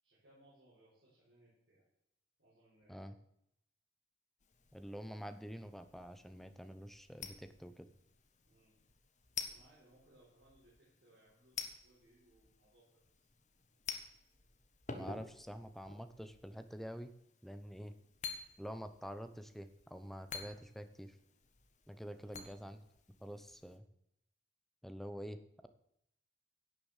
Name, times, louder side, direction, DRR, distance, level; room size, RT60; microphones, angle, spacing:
voice 1, 0.0-1.8 2.4-3.1 8.4-8.8 9.5-13.3 22.2-22.6, right 1 dB, 60° right, -9 dB, 6.3 m, -67 dB
sound 1, 4.4-23.8, left 5 dB, 40° left, 1.5 m, -51 dB
voice 2, 4.7-7.9 14.9-17.1 17.4-17.9 18.6-21.2 21.9-22.8 23.2-23.8 24.8-25.7, equal, ahead, 10 dB, 0.8 m, -47 dB
16.5 x 6.8 x 7.4 m, 0.79 s
head